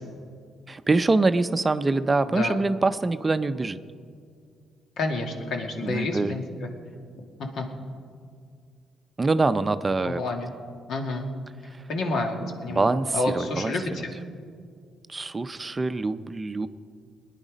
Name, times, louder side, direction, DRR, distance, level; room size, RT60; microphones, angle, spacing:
voice 1, 0.7-3.8 5.8-6.4 9.2-10.2 11.6-11.9 12.7-14.1 15.1-16.7, right 3 dB, 25° right, 11 dB, 0.5 m, -25 dB
voice 2, 5.0-6.7 7.4-7.6 10.0-10.5 10.9-11.3 11.9-14.1, left 2 dB, 70° left, 2 dB, 2.1 m, -29 dB
20.0 x 10.0 x 5.2 m, 2.2 s
cardioid pair, 90°, 0 cm